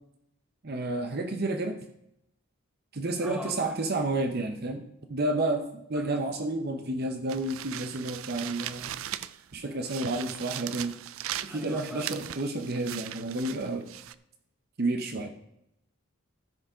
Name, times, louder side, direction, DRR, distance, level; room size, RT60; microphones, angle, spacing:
voice 1, 0.6-1.8 2.9-4.8 5.1-8.9 9.5-11.0 11.4-13.9 14.8-15.3, right 2 dB, 50° right, 6 dB, 0.7 m, -30 dB
voice 2, 3.2-3.7 5.9-6.1 11.5-12.1, equal, 5° right, 1 dB, 1.3 m, -40 dB
sound 1, 7.3-9.5 9.8-14.1, right 12 dB, 75° right, 0.4 m, -39 dB
13.5 x 5.0 x 5.0 m, 0.79 s
head